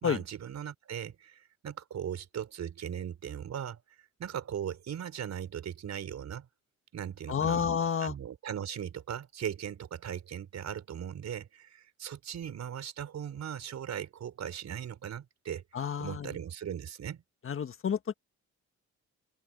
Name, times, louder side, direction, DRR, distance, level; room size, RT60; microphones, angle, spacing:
voice 1, 0.0-3.8 4.2-6.5 6.9-7.7 8.0-15.6 16.0-17.2, right 9 dB, 60° right, 4.4 m, -38 dB
voice 2, 7.3-8.1 15.7-16.3 17.4-18.1, left 7 dB, 45° left, 1.6 m, -30 dB
cardioid pair, 90°, 30 cm